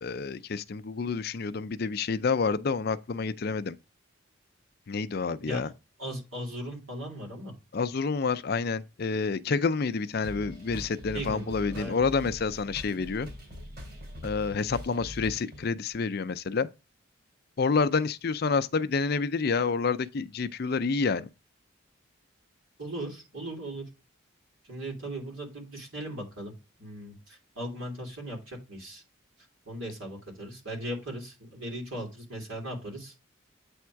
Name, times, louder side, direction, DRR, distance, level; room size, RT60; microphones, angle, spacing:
voice 1, 0.0-3.8 4.9-5.7 7.7-13.3 14.2-16.7 17.6-21.3, left 4 dB, 50° left, 0.5 m, -28 dB
voice 2, 6.0-7.5 11.1-12.0 22.8-23.8 24.7-26.5 26.8-29.0 29.7-33.1, right 1 dB, 85° right, 3.1 m, -38 dB
sound 1, 10.2-15.6, equal, 50° right, 3.0 m, -42 dB
8.6 x 3.6 x 4.6 m
head